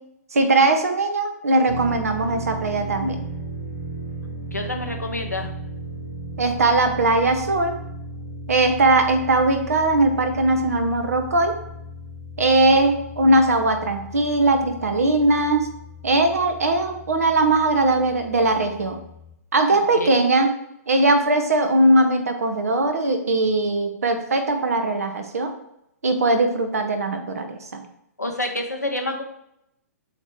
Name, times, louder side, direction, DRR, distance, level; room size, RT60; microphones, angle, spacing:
voice 1, 0.3-3.2 6.4-7.7 8.5-11.5 12.4-15.7 16.0-19.0 19.5-20.5 20.9-25.5 26.0-27.8, right 2 dB, 65° right, 7 dB, 0.9 m, -20 dB
sound 1, 1.7-19.3, right 1 dB, 30° right, 1.6 m, -36 dB
voice 2, 4.5-5.5 19.7-20.2 28.2-29.2, left 2 dB, 90° left, 2 dB, 0.9 m, -28 dB
7.7 x 3.1 x 4.5 m, 0.79 s
figure-of-eight pair, 115°, 9 cm